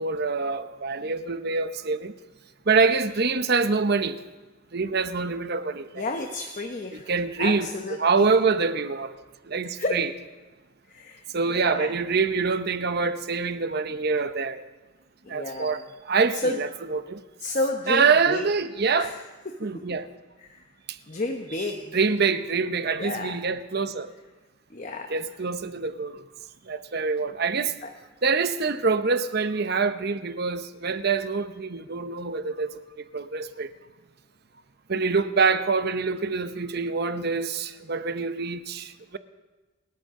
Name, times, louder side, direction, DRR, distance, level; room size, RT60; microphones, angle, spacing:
voice 1, 0.0-2.1 2.7-4.2 4.7-6.0 6.9-9.1 9.5-10.1 11.3-14.6 15.3-15.8 16.1-17.2 17.9-19.1 19.6-20.1 21.9-24.1 25.1-26.2 26.7-27.7 28.2-32.7 33.1-33.7 34.9-39.2, right 4 dB, 50° right, 0.8 m, -25 dB
voice 2, 5.9-7.1 7.4-8.2 9.8-10.0 10.9-11.9 15.2-15.8 16.4-16.5 17.4-18.5 19.0-19.2 20.4-20.6 21.1-22.0 23.0-23.4 24.7-25.1 27.8-27.9, left 2 dB, 40° left, 1.0 m, -31 dB
28.0 x 13.5 x 3.8 m
head